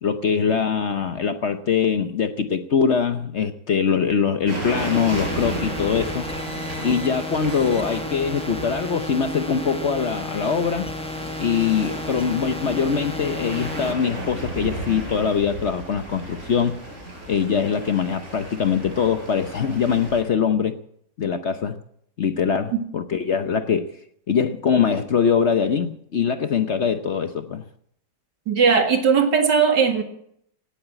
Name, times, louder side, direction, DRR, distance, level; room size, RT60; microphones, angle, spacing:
voice 1, 0.0-6.3 6.8-10.9 11.4-16.8 17.3-20.7 21.2-21.8 22.2-23.9 24.3-27.6, left 6 dB, 50° left, 9 dB, 0.9 m, -22 dB
sound 1, 4.5-20.2, right 1 dB, 40° right, 4.8 m, -34 dB
sound 2, 4.7-13.9, left 2 dB, 5° left, 0.5 m, -33 dB
voice 2, 28.5-30.0, right 6 dB, 80° right, 5 dB, 2.5 m, -18 dB
17.5 x 8.9 x 8.8 m, 0.71 s
omnidirectional pair, 1.8 m